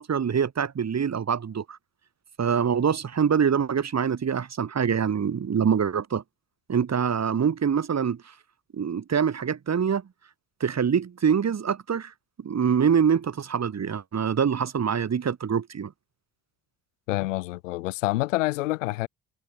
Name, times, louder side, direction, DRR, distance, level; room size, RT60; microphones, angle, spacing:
voice 1, 0.0-1.8 2.4-6.2 6.7-8.2 8.7-10.0 10.6-12.1 12.4-15.9, right 7 dB, 45° right, 6.1 m, -25 dB
voice 2, 17.1-19.1, left 19 dB, 85° left, 1.3 m, -27 dB
hypercardioid pair, 50°, 36 cm